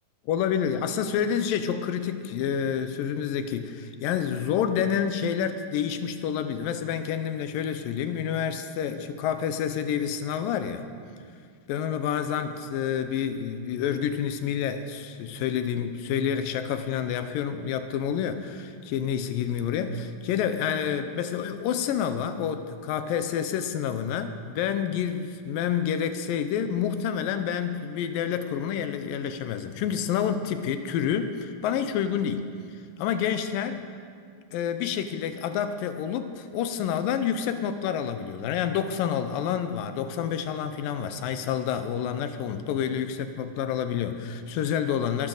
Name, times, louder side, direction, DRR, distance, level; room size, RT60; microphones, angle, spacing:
voice 1, 0.3-10.8 11.7-32.5 33.0-33.9 34.5-45.3, left 8 dB, 85° left, 9 dB, 2.4 m, -28 dB
23.0 x 12.0 x 3.9 m, 2.1 s
omnidirectional pair, 4.0 m